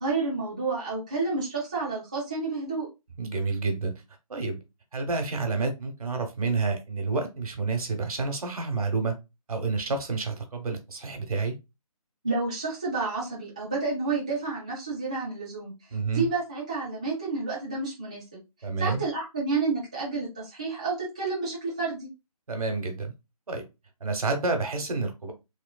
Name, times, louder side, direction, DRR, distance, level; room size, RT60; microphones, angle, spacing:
voice 1, 0.0-2.9 12.2-15.7 16.1-18.4 18.8-22.1, right 3 dB, 10° right, 0.3 m, -30 dB
voice 2, 3.2-3.9 4.3-4.6 4.9-9.2 9.5-11.6 15.9-16.3 18.6-19.0 22.5-23.1 23.5-23.7 24.0-25.3, right 4 dB, 70° right, 0.9 m, -29 dB
3.1 x 2.1 x 2.2 m
figure-of-eight pair, 160°, 19 cm